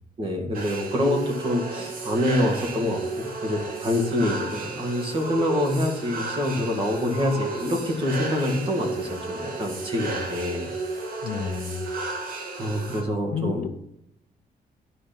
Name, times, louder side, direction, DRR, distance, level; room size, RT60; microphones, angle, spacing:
voice 1, 0.2-10.7 12.5-13.7, left 1 dB, 30° right, 1 dB, 1.9 m, -26 dB
sound 1, 0.5-13.0, right 3 dB, 60° right, 1.8 m, -33 dB
voice 2, 11.2-11.9 13.3-13.7, left 7 dB, 55° left, 9 dB, 0.8 m, -30 dB
11.0 x 5.3 x 5.9 m, 0.78 s
cardioid pair, 175°, 17 cm